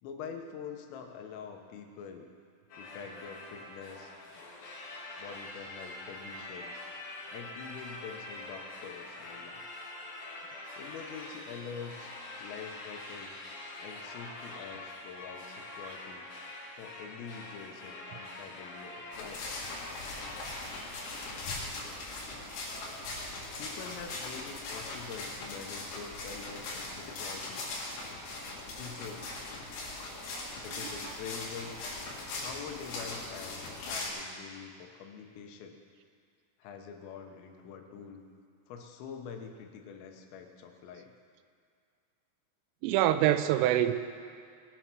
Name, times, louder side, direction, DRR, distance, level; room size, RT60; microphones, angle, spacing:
voice 1, 0.0-2.3 2.7-4.1 5.2-6.8 7.3-9.7 10.8-12.1 12.4-13.4 13.8-16.3 16.8-19.9 23.6-27.7 28.7-29.5 30.6-31.8 32.4-35.8 36.6-38.2 38.7-41.1, left 6 dB, 85° left, 4 dB, 3.7 m, -45 dB
sound 1, 2.7-21.6, left 2 dB, 55° left, 3.3 m, -45 dB
sound 2, 19.1-34.1, left 2 dB, 70° left, 4.4 m, -40 dB
voice 2, 42.8-43.9, right 12 dB, 85° right, 10 dB, 3.2 m, -25 dB
20.0 x 7.7 x 6.2 m, 2.2 s
omnidirectional pair, 5.7 m